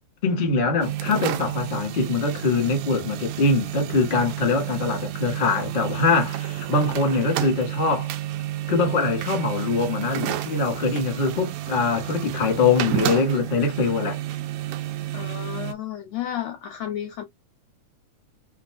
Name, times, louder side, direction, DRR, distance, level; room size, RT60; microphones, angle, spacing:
voice 1, 0.2-8.1 8.7-14.2, left 4 dB, 50° left, 0.6 m, -23 dB
sound 1, 0.8-15.7, right 14 dB, 85° right, 2.2 m, -30 dB
voice 2, 15.1-17.2, left 11 dB, 80° left, 1.5 m, -32 dB
5.5 x 2.6 x 2.3 m
omnidirectional pair, 3.8 m